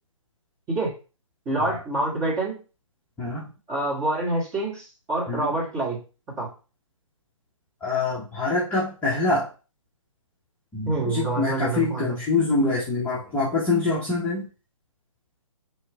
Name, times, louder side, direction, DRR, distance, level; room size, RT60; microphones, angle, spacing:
voice 1, 1.5-2.6 3.7-6.0 6.4-6.5 10.9-12.2, right 2 dB, 15° right, -6 dB, 2.0 m, -27 dB
voice 2, 7.8-9.5 10.7-14.5, left 3 dB, 10° left, -8 dB, 0.9 m, -25 dB
4.5 x 3.3 x 3.5 m, 0.33 s
figure-of-eight pair, 140°, 17 cm